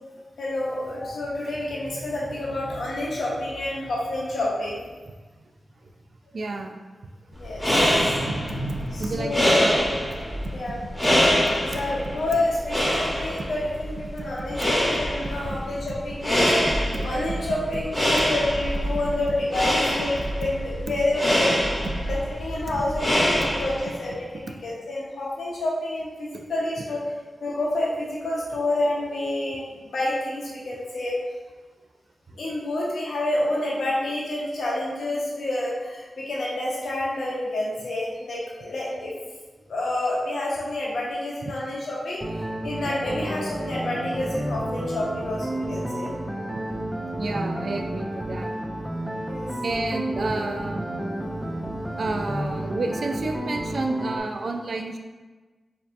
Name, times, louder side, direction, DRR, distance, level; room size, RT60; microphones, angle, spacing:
voice 1, 0.4-4.8 7.4-9.7 10.5-10.8 11.7-20.1 20.4-21.6 22.0-27.0 27.4-31.1 32.4-39.1 39.7-42.2 42.6-46.1 49.3-49.5, left 1 dB, 80° left, -5 dB, 0.8 m, -28 dB
voice 2, 6.3-6.8 7.0-7.1 7.8-8.0 8.3-8.6 9.0-9.9 10.1-10.6 11.0-11.2 11.5-11.6 12.1-12.2 13.4-13.5 14.2-14.6 15.2-15.6 16.9-17.1 18.2-18.3 22.7-22.8 24.5-24.6 26.3-26.4 32.3-32.4 41.4-41.5 46.5-46.6 47.2-48.5 49.6-51.5 52.0-55.0, right 3 dB, 70° right, 4 dB, 0.4 m, -32 dB
sound 1, 7.4-24.0, equal, 15° left, 1.1 m, -25 dB
sound 2, 42.2-54.2, right 1 dB, 15° right, 0.5 m, -31 dB
4.3 x 2.7 x 2.6 m, 1.3 s
cardioid pair, 50°, 0 cm